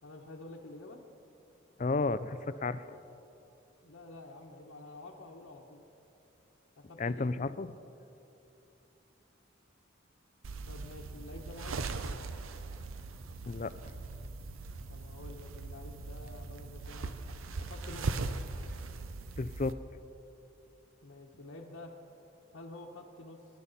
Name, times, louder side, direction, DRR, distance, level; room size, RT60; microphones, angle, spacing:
voice 1, 0.0-1.0 3.8-5.8 6.8-7.3 10.6-11.9 14.9-17.1 17.5-18.2 21.0-21.9 22.5-23.4, left 2 dB, 85° left, -3 dB, 1.2 m, -49 dB
voice 2, 1.8-2.9 7.0-7.7 13.5-13.7 19.4-19.8, left 3 dB, 35° left, 14 dB, 0.4 m, -32 dB
sound 1, 10.4-19.7, right 3 dB, 85° right, 0.7 m, -40 dB
24.0 x 11.0 x 4.1 m, 2.9 s
head